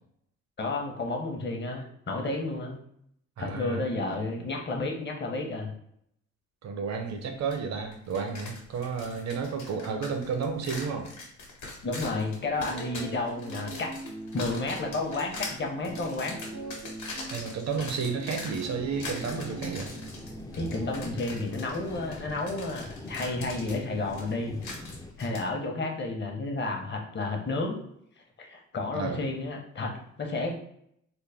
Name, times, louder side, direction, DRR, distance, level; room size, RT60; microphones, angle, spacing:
voice 1, 0.6-2.8 3.4-5.7 11.8-13.9 14.3-16.4 20.5-24.6 25.2-27.8 28.4-30.5, left 2 dB, 35° left, 1 dB, 0.9 m, -31 dB
voice 2, 3.4-3.9 6.6-11.1 17.3-19.9 28.9-29.3, right 5 dB, 60° right, 5 dB, 0.7 m, -32 dB
sound 1, 7.5-7.6 7.9-25.4, left 3 dB, 70° left, 1.2 m, -42 dB
sound 2, 12.6-21.2, right 3 dB, 90° right, 0.9 m, -43 dB
sound 3, 18.7-25.1, left 2 dB, 10° left, 0.5 m, -43 dB
3.9 x 2.1 x 3.4 m, 0.71 s
cardioid pair, 90°, 30 cm